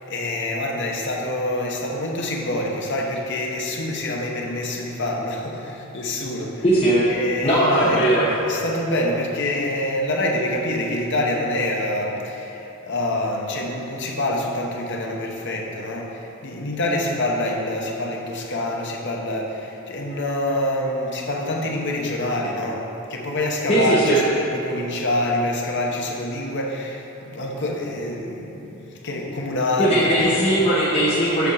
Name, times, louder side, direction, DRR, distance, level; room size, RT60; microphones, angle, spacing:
voice 1, 0.0-6.6 7.1-8.1 8.4-30.4, left 1 dB, 60° left, 0 dB, 1.0 m, -26 dB
voice 2, 6.6-7.1 7.4-8.3 23.7-24.2 29.8-31.5, right 1 dB, 30° left, -9 dB, 1.0 m, -18 dB
8.1 x 4.4 x 6.4 m, 3.0 s
head